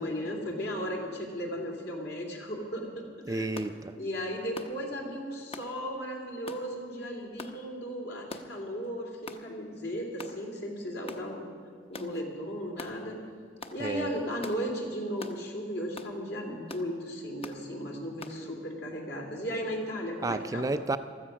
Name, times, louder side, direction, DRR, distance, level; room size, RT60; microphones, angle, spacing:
voice 1, 0.0-3.5 3.9-11.5 11.9-13.2 13.7-20.7, equal, 65° left, 0 dB, 2.9 m, -36 dB
voice 2, 3.3-4.0 13.8-14.2 20.2-21.0, right 2 dB, 20° right, 10 dB, 0.4 m, -31 dB
sound 1, 3.6-3.7 4.6-4.8 5.5-5.7 6.5-6.7 7.4-7.6 8.3-8.6 9.3-9.4 10.2-10.4 11.1-11.3 11.9-12.1 12.8-13.0 13.6-13.8 14.4-14.6 15.2-15.4 16.0-16.1 16.7-16.9 17.4-17.6 18.2-18.4, left 2 dB, 35° left, 0.9 m, -42 dB
16.0 x 13.5 x 6.2 m, 2.2 s
head